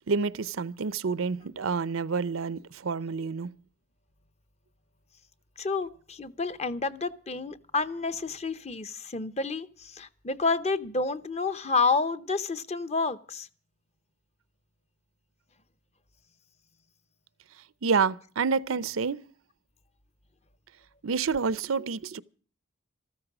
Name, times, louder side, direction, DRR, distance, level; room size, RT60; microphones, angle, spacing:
voice 1, 0.1-3.6 17.8-19.2 21.0-22.2, right 5 dB, 75° right, 0.6 m, -28 dB
voice 2, 5.6-13.5, left 4 dB, 30° left, 0.7 m, -29 dB
14.0 x 13.5 x 6.0 m
head